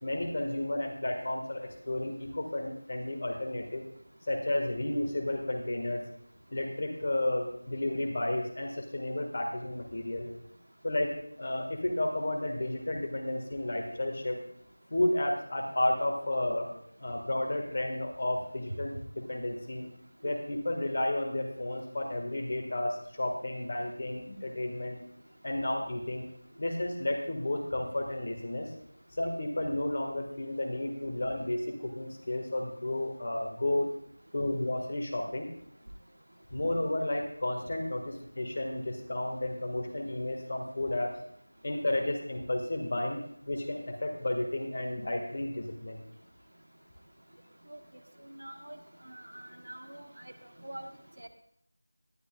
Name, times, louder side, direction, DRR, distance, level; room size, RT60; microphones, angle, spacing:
voice 1, 0.0-3.8 4.3-6.0 6.5-10.3 10.8-14.4 14.9-16.7 17.0-19.9 20.2-25.0 25.4-26.2 26.6-28.7 29.2-33.9 34.3-35.5 36.5-41.1 41.6-43.2 43.5-46.0, left 1 dB, 40° left, 2 dB, 1.8 m, -32 dB
voice 2, 48.3-48.8 49.1-50.1 50.6-50.9 51.2-51.3, right 1 dB, 75° right, 6 dB, 1.4 m, -44 dB
18.5 x 10.5 x 2.4 m, 0.69 s
figure-of-eight pair, 175°, 0 cm